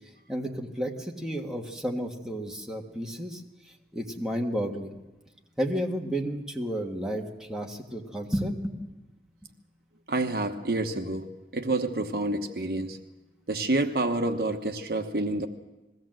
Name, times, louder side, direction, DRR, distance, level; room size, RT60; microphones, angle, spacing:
voice 1, 0.3-3.4 3.9-5.0 5.6-8.8, equal, 5° right, 0 dB, 1.6 m, -32 dB
voice 2, 10.1-13.0 13.5-15.5, right 2 dB, 60° right, 6 dB, 1.1 m, -28 dB
21.0 x 16.0 x 7.7 m, 1.1 s
head